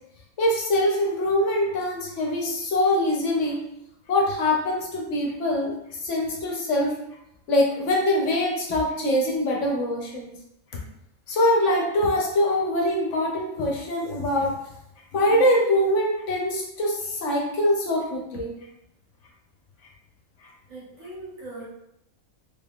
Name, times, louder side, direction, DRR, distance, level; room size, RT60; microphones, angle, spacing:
voice 1, 0.4-3.6 4.1-6.9 7.5-10.3 11.3-14.6 15.1-18.5, left 1 dB, 65° left, -1 dB, 0.9 m, -23 dB
voice 2, 20.7-21.7, right 2 dB, 65° right, -7 dB, 1.7 m, -40 dB
3.5 x 3.3 x 2.3 m, 0.81 s
omnidirectional pair, 1.5 m